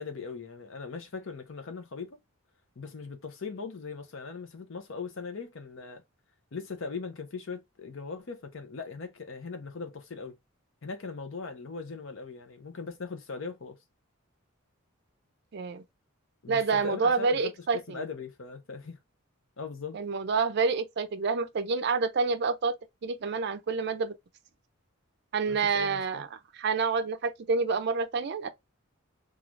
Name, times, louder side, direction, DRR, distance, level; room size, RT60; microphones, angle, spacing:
voice 1, 0.0-2.2 2.8-6.0 6.5-10.4 10.8-13.8 16.4-19.0 19.6-20.0 25.5-26.3, left 4 dB, 65° left, 0.6 m, -39 dB
voice 2, 15.5-15.8 16.5-18.0 19.9-22.7 23.0-24.1 25.3-26.3 26.6-28.5, right 4 dB, 50° right, 0.4 m, -28 dB
3.1 x 2.4 x 2.4 m
head